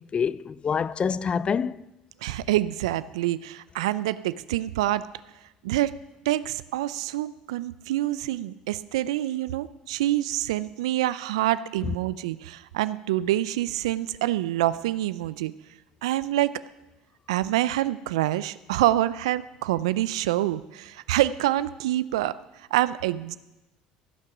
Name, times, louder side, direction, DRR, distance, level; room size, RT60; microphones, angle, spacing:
voice 1, 0.0-1.9 11.8-11.9, left 6 dB, 35° left, 0.4 m, -27 dB
voice 2, 2.2-5.1 5.6-5.9 6.3-15.5 16.0-16.6 17.3-22.4 22.7-23.4, right 14 dB, 80° right, 0.4 m, -26 dB
16.0 x 6.0 x 5.9 m
hypercardioid pair, 70°, 3 cm